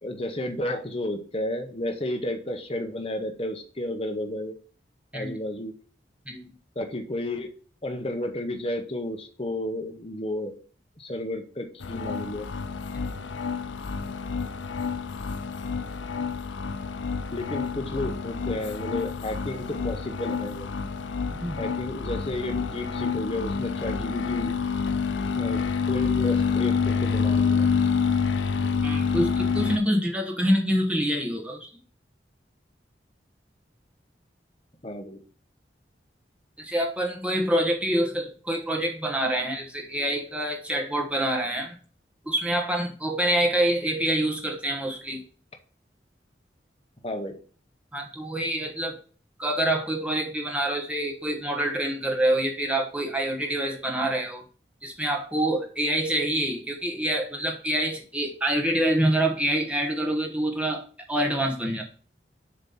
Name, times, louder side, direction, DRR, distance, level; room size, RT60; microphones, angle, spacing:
voice 1, 0.0-4.5 5.1-5.7 6.7-7.5 7.8-10.5 11.0-12.5 17.3-20.7 21.6-24.6 25.3-27.7 34.8-35.2 47.0-47.4, left 1 dB, 30° left, 3 dB, 1.0 m, -32 dB
sound 1, 11.8-29.8, left 5 dB, 90° left, 0.5 m, -28 dB
voice 2, 12.9-13.3 21.3-21.6 28.8-31.7 36.6-41.8 42.2-45.2 47.9-49.0 49.4-54.4 54.8-61.9, right 1 dB, 5° right, 1 dB, 1.0 m, -26 dB
7.2 x 3.0 x 5.5 m, 0.41 s
head